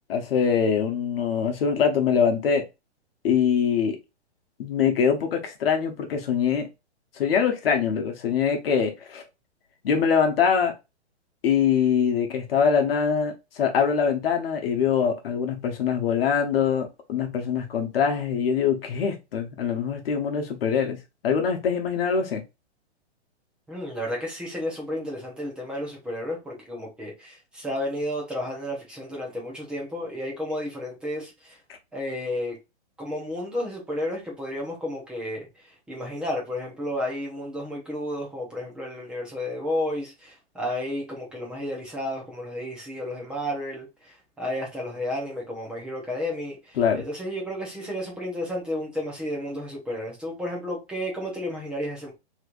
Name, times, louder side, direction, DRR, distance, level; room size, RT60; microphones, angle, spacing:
voice 1, 0.1-2.6 3.2-4.0 4.6-6.7 7.2-9.2 9.8-10.7 11.4-21.0 21.2-22.4 46.8-47.0, left 7 dB, 55° left, 1.0 m, -23 dB
voice 2, 23.7-31.6 31.9-32.6 33.0-35.5 35.9-52.1, left 1 dB, 5° right, 0.7 m, -32 dB
3.2 x 3.1 x 2.5 m
hypercardioid pair, 155°, 34 cm